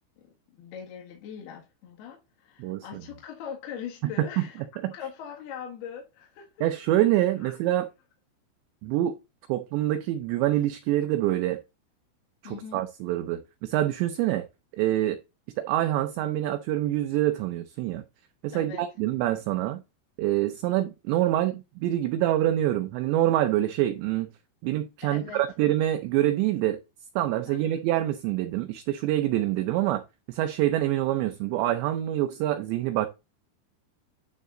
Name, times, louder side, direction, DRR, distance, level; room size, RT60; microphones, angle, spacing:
voice 1, 0.5-6.7 7.4-7.6 12.4-12.8 18.5-18.8 25.0-25.4 27.5-27.7, left 8 dB, 60° left, 3.2 m, -41 dB
voice 2, 2.6-3.0 4.2-4.3 4.8-4.9 6.6-7.9 8.8-9.2 9.5-11.6 12.4-14.4 14.7-15.2 15.6-18.0 18.4-19.8 20.2-24.3 24.6-26.8 27.2-30.0 30.3-33.1, right 13 dB, 80° right, 2.6 m, -26 dB
11.5 x 4.0 x 3.8 m
omnidirectional pair, 5.7 m